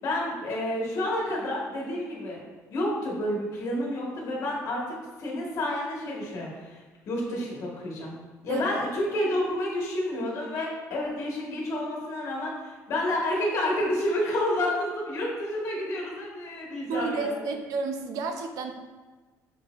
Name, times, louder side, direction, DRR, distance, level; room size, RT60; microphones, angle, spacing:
voice 1, 0.0-2.4 2.7-8.1 8.4-17.3, left 1 dB, 55° left, -3 dB, 1.4 m, -30 dB
voice 2, 16.9-18.7, right 4 dB, 70° right, 5 dB, 0.5 m, -31 dB
5.4 x 3.9 x 2.5 m, 1.3 s
cardioid pair, 135°, 6 cm